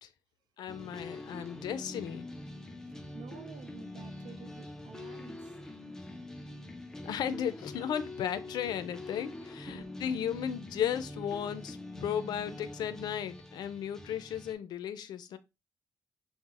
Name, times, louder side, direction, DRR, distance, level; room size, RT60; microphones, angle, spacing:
voice 1, 0.6-2.3 7.0-15.4, left 9 dB, 75° left, 0.4 m, -35 dB
sound 1, 0.7-14.5, left 2 dB, 5° left, 0.4 m, -45 dB
voice 2, 2.8-5.7 9.7-9.9, right 7 dB, 80° right, 0.5 m, -51 dB
5.6 x 2.1 x 2.4 m
wide cardioid pair, 160°, 7 cm